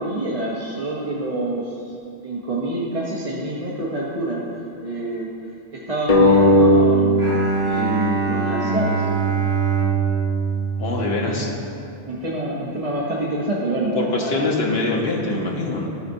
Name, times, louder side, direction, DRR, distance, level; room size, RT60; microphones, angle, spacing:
voice 1, 0.0-1.9 2.2-4.4 4.8-5.3 5.7-7.2 7.6-9.1 11.0-11.5 12.1-14.4, right 1 dB, 35° right, -5 dB, 0.9 m, -26 dB
sound 1, 6.1-9.3, equal, 35° left, 0.9 m, -18 dB
Bowed string instrument, 7.2-11.6, right 6 dB, 85° right, 2.2 m, -24 dB
voice 2, 10.8-11.5 13.9-15.9, left 3 dB, 70° left, -1 dB, 1.3 m, -23 dB
14.0 x 5.7 x 2.6 m, 2.6 s
omnidirectional pair, 1.1 m